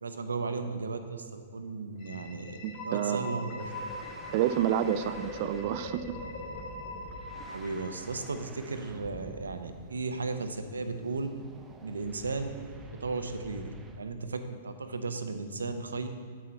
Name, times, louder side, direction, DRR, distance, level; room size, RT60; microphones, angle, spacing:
voice 1, 0.0-2.6 2.8-3.7 7.5-11.3 11.8-12.7 12.9-16.1, right 3 dB, 85° right, 9 dB, 0.6 m, -35 dB
sound 1, 2.0-8.7, left 2 dB, 45° left, 1.2 m, -41 dB
voice 2, 2.6-3.4 4.3-6.2, right 11 dB, 50° right, 12 dB, 0.4 m, -29 dB
sound 2, 3.6-14.1, right 2 dB, 15° right, 0.7 m, -48 dB
7.4 x 6.3 x 4.3 m, 2.2 s
hypercardioid pair, 115°, 0 cm